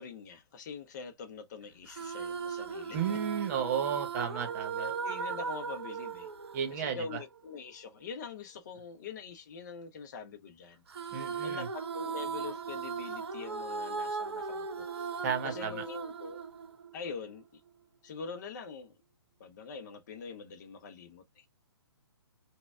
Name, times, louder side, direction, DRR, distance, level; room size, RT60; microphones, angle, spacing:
voice 1, 0.0-3.2 4.7-6.3 6.7-14.9 15.4-16.4 16.9-17.6 18.0-18.9 19.4-21.5, left 5 dB, 40° left, 0.6 m, -44 dB
sound 1, 1.9-7.4 10.9-17.3, right 5 dB, 65° right, 0.7 m, -38 dB
voice 2, 2.9-4.9 6.5-7.0 11.1-11.7 15.2-15.8, right 7 dB, 35° right, 0.9 m, -33 dB
3.9 x 2.2 x 2.3 m
figure-of-eight pair, 125°, 14 cm